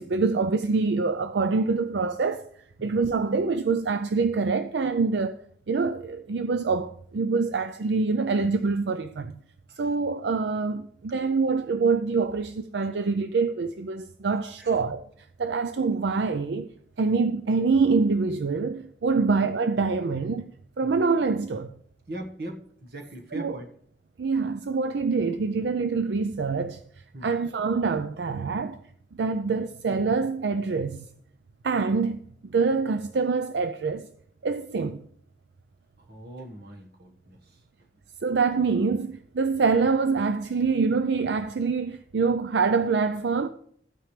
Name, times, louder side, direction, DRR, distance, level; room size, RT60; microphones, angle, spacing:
voice 1, 0.0-2.5 2.8-5.4 5.7-9.3 9.8-15.0 15.4-16.7 17.0-21.7 23.3-23.6 24.2-26.8 27.2-28.8 29.2-31.1 31.6-34.1 34.4-35.0 38.2-43.5, right 4 dB, 80° right, 0.5 m, -25 dB
voice 2, 22.1-23.7 27.1-27.3 36.0-37.6, right 1 dB, 60° right, 1.5 m, -41 dB
13.5 x 9.1 x 3.3 m
head